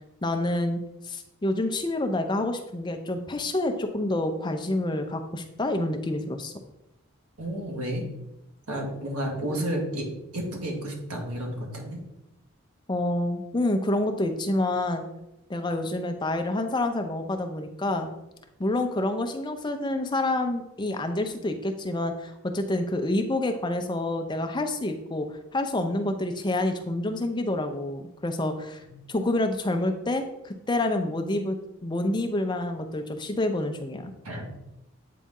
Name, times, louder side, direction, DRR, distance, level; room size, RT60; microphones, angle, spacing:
voice 1, 0.2-6.5 12.9-15.0 15.5-18.1 18.6-31.6 31.8-34.1, left 1 dB, 20° left, 6 dB, 0.5 m, -28 dB
voice 2, 7.4-8.1 8.7-10.1 10.3-12.0 28.9-29.0 34.2-34.4, right 1 dB, 85° right, 0 dB, 1.8 m, -31 dB
8.4 x 4.1 x 3.7 m, 0.89 s
head